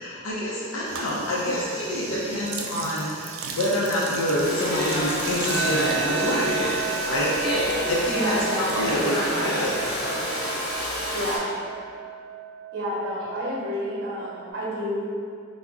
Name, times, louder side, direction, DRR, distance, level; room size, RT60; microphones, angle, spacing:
voice 1, 0.0-6.6 7.1-7.3 7.9-9.7, left 1 dB, 85° left, -6 dB, 0.5 m, -27 dB
sound 1, 0.8-7.8 8.0-10.4, right 4 dB, 70° right, 0.3 m, -37 dB
Domestic sounds home sounds, 4.4-11.4, equal, 25° left, 0.8 m, -28 dB
sound 2, 5.4-14.5, right 7 dB, 25° right, 0.7 m, -34 dB
voice 2, 8.1-9.1 11.1-11.6 12.7-15.0, equal, 50° right, -5 dB, 0.8 m, -29 dB
3.6 x 2.0 x 3.5 m, 2.3 s
head